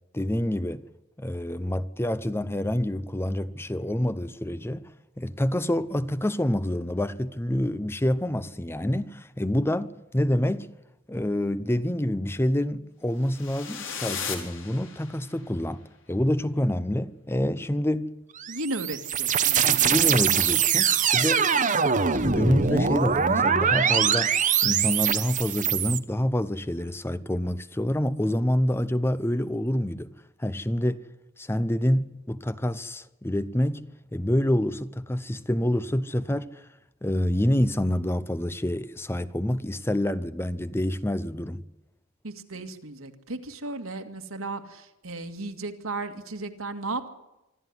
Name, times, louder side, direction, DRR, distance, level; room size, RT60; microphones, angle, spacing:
voice 1, 0.1-0.8 1.2-4.9 5.2-10.7 11.1-18.1 19.6-21.5 22.2-24.3 24.6-30.1 30.4-31.0 31.4-36.6 37.0-41.6, left 1 dB, 10° left, 0.7 m, -27 dB
sound 1, 13.2-15.4, left 6 dB, 65° left, 4.5 m, -36 dB
sound 2, 18.4-26.0, right 7 dB, 40° right, 1.1 m, -23 dB
voice 2, 18.5-20.0 42.2-47.1, right 2 dB, 85° right, 2.2 m, -35 dB
25.5 x 13.0 x 9.6 m
head